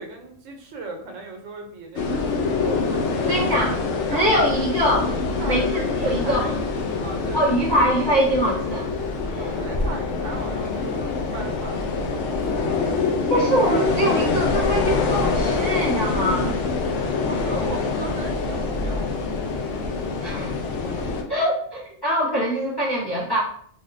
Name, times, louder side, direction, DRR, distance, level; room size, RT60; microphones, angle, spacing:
voice 1, 0.0-3.7 4.1-4.8 5.4-6.6 7.0-8.0 9.4-12.9 17.3-19.5 20.8-21.5, right 2 dB, 85° right, 3 dB, 1.0 m, -37 dB
sound 1, 2.0-21.2, left 4 dB, 75° left, 0.9 m, -25 dB
voice 2, 3.2-3.8 4.1-5.1 5.5-6.5 7.3-8.9 13.3-16.5 20.2-20.6 21.3-23.4, equal, 25° left, -7 dB, 0.7 m, -23 dB
3.3 x 2.6 x 2.5 m, 0.62 s
omnidirectional pair, 1.3 m